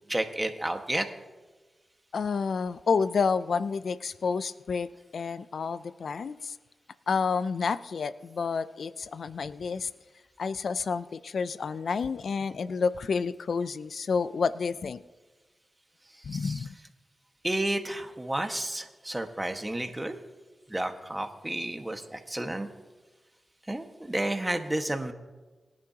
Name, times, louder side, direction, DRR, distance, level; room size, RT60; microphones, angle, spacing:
voice 1, 0.1-1.1 16.3-16.5 17.4-20.1 20.7-22.7 23.7-25.1, right 1 dB, 20° right, 5 dB, 1.6 m, -31 dB
voice 2, 2.1-6.6 7.1-9.9 10.4-15.0 16.3-16.7, left 5 dB, 75° left, 15 dB, 0.4 m, -29 dB
23.5 x 10.5 x 2.9 m, 1.3 s
cardioid pair, 50°, 0 cm